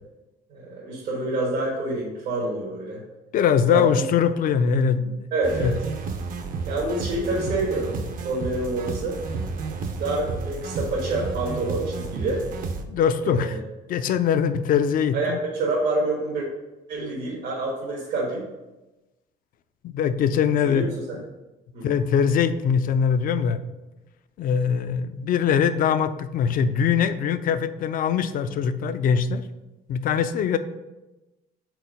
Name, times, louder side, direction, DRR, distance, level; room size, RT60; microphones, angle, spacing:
voice 1, 0.5-3.0 3.7-4.0 5.3-5.8 6.7-7.9 8.2-9.2 9.9-12.4 13.2-13.6 15.1-16.5 16.9-18.4 20.6-20.8 21.1-21.2 21.7-21.9, right 2 dB, 80° right, -5 dB, 1.6 m, -27 dB
voice 2, 3.3-5.2 5.6-5.7 12.9-13.6 13.9-15.4 19.8-20.9 21.8-23.6 24.4-29.4 29.9-30.6, left 7 dB, 55° left, 11 dB, 0.4 m, -22 dB
sound 1, 5.4-12.8, right 4 dB, 55° right, 0.7 m, -31 dB
4.6 x 4.2 x 5.2 m, 1.0 s
cardioid pair, 110°, 17 cm